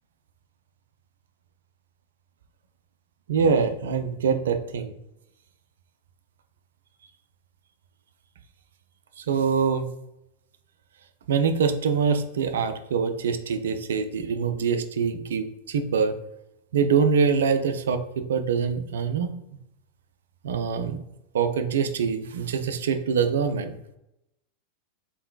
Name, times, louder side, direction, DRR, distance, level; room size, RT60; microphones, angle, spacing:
voice 1, 3.3-4.9 9.2-9.9 11.3-16.1 16.7-19.3 20.4-21.0 21.3-23.8, right 6 dB, 65° right, 9 dB, 0.4 m, -24 dB
4.0 x 3.7 x 2.3 m, 0.85 s
figure-of-eight pair, 90°, 0 cm